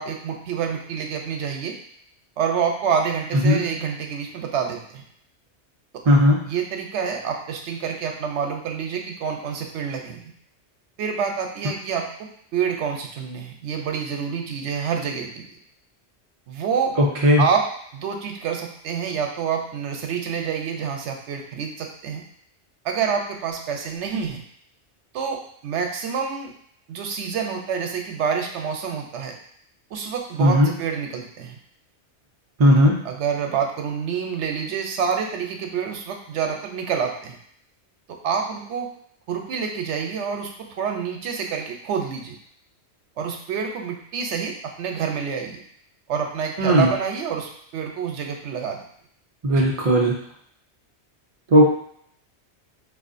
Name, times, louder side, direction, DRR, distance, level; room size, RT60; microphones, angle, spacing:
voice 1, 0.0-1.8 2.4-5.0 5.9-6.0 6.5-10.3 11.0-15.5 16.5-17.0 17.4-22.2 22.8-24.4 25.1-26.5 26.9-29.3 29.9-31.6 33.0-37.4 38.1-38.9 39.3-42.4 43.2-45.6 46.1-48.8 49.5-49.7, right 7 dB, 85° right, 2 dB, 0.9 m, -27 dB
voice 2, 6.1-6.4 17.2-17.4 30.4-30.7 32.6-33.0 46.6-46.9 49.4-50.1 51.5-51.7, equal, 50° right, -3 dB, 0.4 m, -16 dB
4.8 x 2.4 x 2.5 m, 0.66 s
omnidirectional pair, 1.2 m